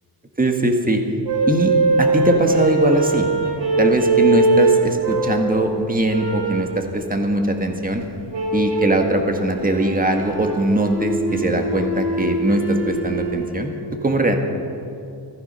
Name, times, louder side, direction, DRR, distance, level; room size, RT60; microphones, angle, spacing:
voice 1, 0.4-1.0 1.5-3.3 3.8-8.0 8.5-14.4, right 1 dB, 20° right, 4 dB, 1.7 m, -21 dB
sound 1, 1.3-5.5 6.1-6.7 8.3-9.0 9.5-13.5, right 3 dB, 85° right, 3.4 m, -21 dB
15.0 x 14.5 x 5.6 m, 2.6 s
wide cardioid pair, 95°, 41 cm